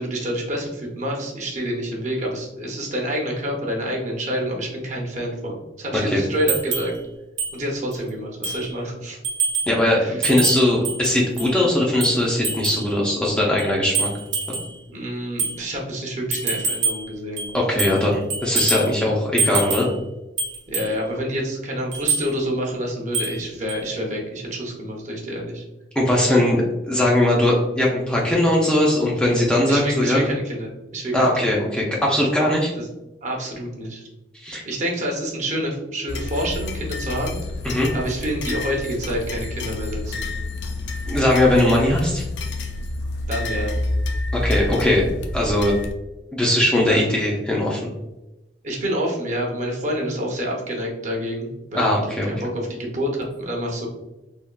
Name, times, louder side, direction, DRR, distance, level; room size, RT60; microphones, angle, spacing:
voice 1, 0.0-6.9 7.5-9.2 10.0-10.2 14.9-17.6 17.9-18.2 20.7-25.6 29.7-31.5 32.8-32.9 33.2-34.1 34.7-37.4 37.9-40.2 43.3-43.8 46.9-47.0 48.6-53.9, equal, 40° right, -1 dB, 0.7 m, -28 dB
voice 2, 5.9-6.2 9.7-14.1 17.5-19.9 26.0-30.2 31.1-32.7 34.4-34.6 37.6-37.9 41.1-42.2 44.3-45.1 45.3-45.7 46.3-47.8 51.7-52.3, left 1 dB, 5° left, -4 dB, 0.4 m, -20 dB
sound 1, 6.5-6.9 7.4-7.5 7.9-8.0 8.4-8.7 9.2-9.8 10.2-11.6 12.0-12.9 13.6-14.7 15.4-15.6 16.3-17.1 17.4-18.1 18.3-18.9 19.4-19.9 20.4-20.9 21.9-22.3 23.1-23.4 23.7-23.8, right 4 dB, 85° right, 0.8 m, -25 dB
sound 2, 36.1-45.9, left 2 dB, 80° left, 0.4 m, -28 dB
3.5 x 2.3 x 2.2 m, 0.98 s
head